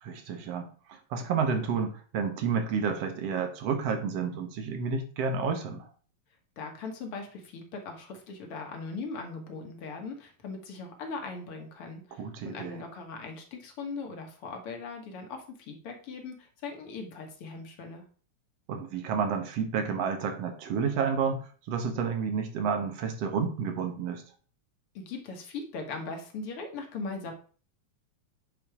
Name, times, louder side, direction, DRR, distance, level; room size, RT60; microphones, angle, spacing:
voice 1, 0.0-5.9 12.2-12.8 18.7-24.2, right 6 dB, 60° right, 6 dB, 2.0 m, -30 dB
voice 2, 6.6-18.0 24.9-27.3, left 4 dB, 55° left, 3 dB, 2.0 m, -39 dB
9.1 x 4.1 x 4.8 m, 0.40 s
omnidirectional pair, 3.4 m